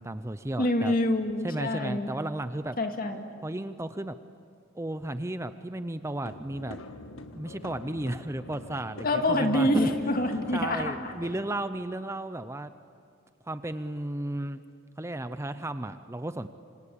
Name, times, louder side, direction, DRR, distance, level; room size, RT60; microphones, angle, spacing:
voice 1, 0.0-0.9 1.4-2.8 3.4-4.2 4.7-6.8 7.3-9.9 10.5-12.7 13.4-14.6 15.0-16.5, right 1 dB, 15° right, 11 dB, 0.6 m, -34 dB
voice 2, 0.6-2.1 2.8-3.3 9.0-11.1, left 1 dB, 45° left, 5 dB, 2.2 m, -26 dB
sound 1, 6.2-11.4, left 2 dB, 90° left, 1.6 m, -44 dB
26.5 x 26.0 x 8.6 m, 2.4 s
head